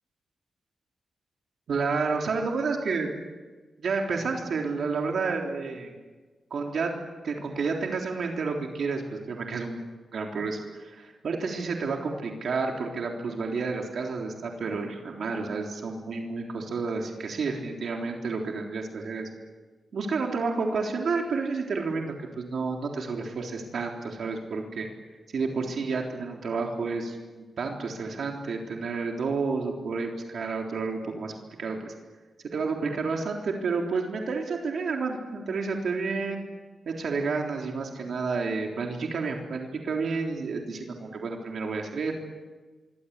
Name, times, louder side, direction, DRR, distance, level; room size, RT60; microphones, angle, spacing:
voice 1, 1.7-3.1 3.8-5.9 6.5-6.9 7.2-9.8 10.1-19.3 19.9-24.9 25.3-31.9 32.4-36.4 36.9-42.1, right 4 dB, 65° right, 1 dB, 3.7 m, -30 dB
26.5 x 24.5 x 8.4 m, 1.3 s
wide cardioid pair, 135°, 0 cm